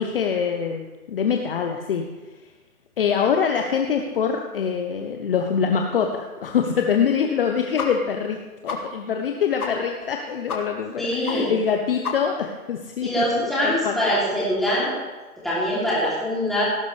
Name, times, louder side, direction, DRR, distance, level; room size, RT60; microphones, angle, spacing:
voice 1, 0.0-2.1 3.0-14.0, left 7 dB, 40° left, 3 dB, 0.8 m, -24 dB
sound 1, 7.8-7.9 8.2-8.3 8.7-8.8 9.2-9.3 9.6-9.7 10.0-10.1 10.5-10.6 10.9-11.0 11.3-11.4 11.7-11.8 12.0-12.4, left 5 dB, 75° left, 2.4 m, -30 dB
voice 2, 11.0-11.5 13.0-14.9 15.4-16.6, equal, ahead, -9 dB, 3.0 m, -23 dB
17.5 x 9.4 x 3.4 m, 1.2 s
hypercardioid pair, 155°, 44 cm